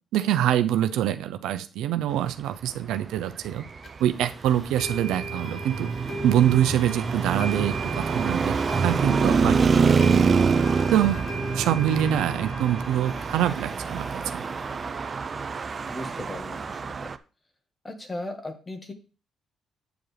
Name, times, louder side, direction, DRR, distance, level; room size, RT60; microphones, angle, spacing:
voice 1, 0.1-3.6 4.0-5.9 6.2-9.7 10.9-11.3 11.5-14.4, right 11 dB, 90° right, 9 dB, 0.6 m, -25 dB
Traffic noise roadway noise, 3.4-17.2, right 5 dB, 40° right, 0.5 m, -26 dB
sound 1, 3.8-3.9 4.8-16.4, right 1 dB, 50° left, 1.5 m, -39 dB
voice 2, 15.9-17.1 17.8-18.9, left 1 dB, 25° left, 6 dB, 1.7 m, -37 dB
9.0 x 7.1 x 3.4 m, 0.35 s
cardioid pair, 90°, 0 cm